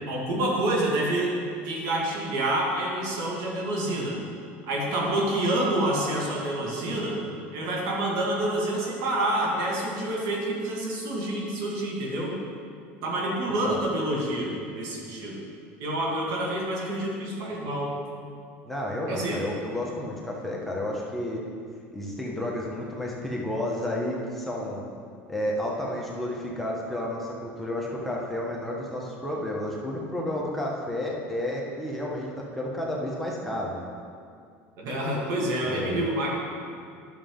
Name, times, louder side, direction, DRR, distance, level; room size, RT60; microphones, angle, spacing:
voice 1, 0.1-1.3 1.6-4.2 4.7-7.2 7.5-12.3 13.0-15.4 15.8-18.0 19.1-19.4 34.8-36.3, right 1 dB, 65° right, -2 dB, 2.3 m, -27 dB
voice 2, 18.6-21.4 21.9-24.8 25.3-33.9 35.6-36.1, left 1 dB, ahead, -4 dB, 1.5 m, -31 dB
11.0 x 6.8 x 3.9 m, 2.3 s
supercardioid pair, 100°, 7 cm